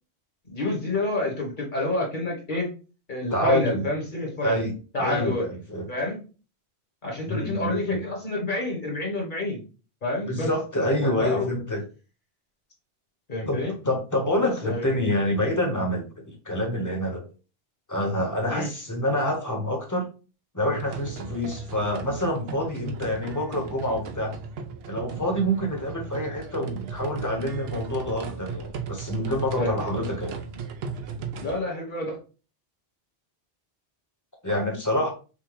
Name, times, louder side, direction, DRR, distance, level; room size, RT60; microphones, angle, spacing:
voice 1, 0.5-2.7 3.1-4.6 4.9-5.4 5.9-6.2 7.0-9.6 10.0-10.5 11.0-11.5 13.3-13.7 14.4-14.8 18.5-18.7 29.6-29.8 31.4-32.2, left 2 dB, 50° left, 0 dB, 1.5 m, -28 dB
voice 2, 3.3-3.9 4.4-4.7 5.0-5.9 7.3-8.0 10.3-11.8 13.5-17.2 17.9-20.1 20.5-24.3 24.9-30.4 34.4-35.1, left 1 dB, 20° left, 1 dB, 1.0 m, -27 dB
sound 1, 20.7-31.6, right 5 dB, 70° right, 0.8 m, -36 dB
5.5 x 2.2 x 3.2 m, 0.35 s
omnidirectional pair, 1.1 m